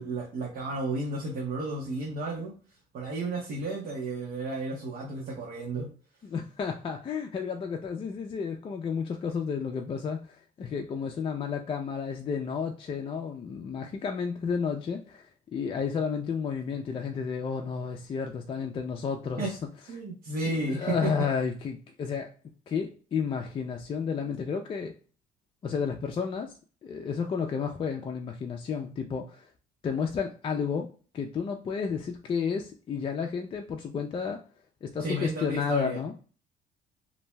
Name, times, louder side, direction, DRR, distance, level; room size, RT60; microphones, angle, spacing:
voice 1, 0.0-2.5 2.9-5.9 19.4-19.5 19.9-21.1 35.0-36.0, right 2 dB, 60° right, -3 dB, 0.9 m, -32 dB
voice 2, 6.2-19.6 20.5-22.3 22.7-24.9 25.6-26.6 26.8-29.5 29.8-30.9 31.1-34.4 34.8-36.2, left 6 dB, 30° left, 2 dB, 0.4 m, -32 dB
2.6 x 2.1 x 3.1 m, 0.38 s
cardioid pair, 110°, 17 cm